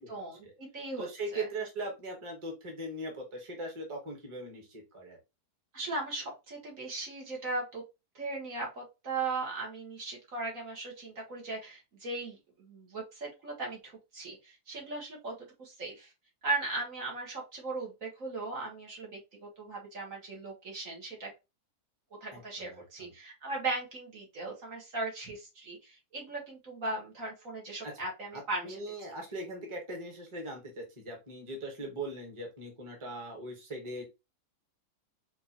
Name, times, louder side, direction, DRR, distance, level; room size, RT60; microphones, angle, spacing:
voice 1, 0.0-1.5 5.7-7.8 8.1-16.1 16.4-21.3 22.2-28.8, right 3 dB, 60° right, -1 dB, 1.6 m, -38 dB
voice 2, 1.0-5.2 22.3-23.1 27.8-28.0 28.3-34.0, right 2 dB, 20° right, 1 dB, 1.1 m, -40 dB
4.6 x 2.7 x 2.8 m, 0.25 s
omnidirectional pair, 1.7 m